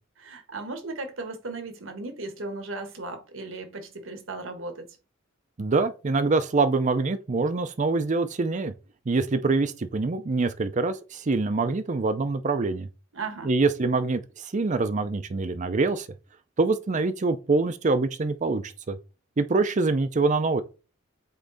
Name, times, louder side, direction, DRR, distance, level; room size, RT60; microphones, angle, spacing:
voice 1, 0.2-4.9 13.1-13.5, right 3 dB, 75° right, 1.4 m, -36 dB
voice 2, 5.6-8.7 9.1-12.9 13.4-16.1 16.6-19.0 19.4-20.6, right 3 dB, 40° right, 0.5 m, -25 dB
8.2 x 3.2 x 3.9 m
head